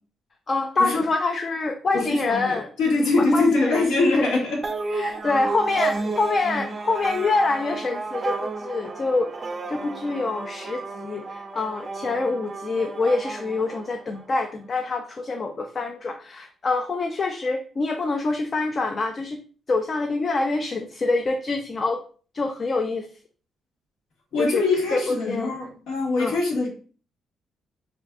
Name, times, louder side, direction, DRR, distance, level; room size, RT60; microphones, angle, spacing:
voice 1, 0.5-2.7 3.2-4.4 4.9-9.3 9.7-19.4 19.7-22.0 22.3-23.1 24.4-24.6 24.9-25.5 26.2-26.4, left 3 dB, 40° left, 4 dB, 0.3 m, -26 dB
voice 2, 1.9-4.6 24.3-26.7, left 3 dB, 85° left, -2 dB, 1.2 m, -23 dB
sound 1, 4.6-14.4, right 3 dB, 35° right, 0.3 m, -32 dB
2.5 x 2.2 x 3.4 m, 0.41 s
cardioid pair, 90°, 0 cm